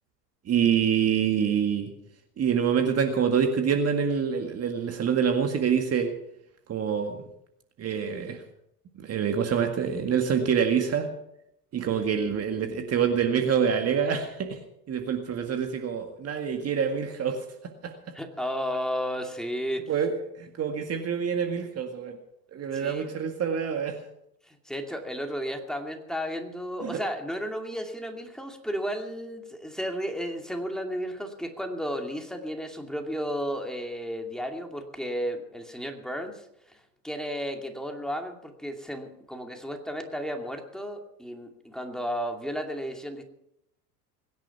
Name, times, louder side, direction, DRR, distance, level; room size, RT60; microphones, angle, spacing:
voice 1, 0.5-1.9 2.4-6.1 6.7-7.2 7.8-8.4 9.0-11.1 11.7-14.6 14.9-17.5 17.8-18.0 19.9-22.2 22.5-24.0 26.8-27.0, right 7 dB, 30° right, 5 dB, 1.9 m, -26 dB
voice 2, 18.1-19.9 22.7-23.1 24.5-36.4 36.7-36.8 37.0-43.2, equal, ahead, 3 dB, 2.5 m, -33 dB
21.5 x 10.5 x 5.9 m, 0.78 s
hypercardioid pair, 95°, 49 cm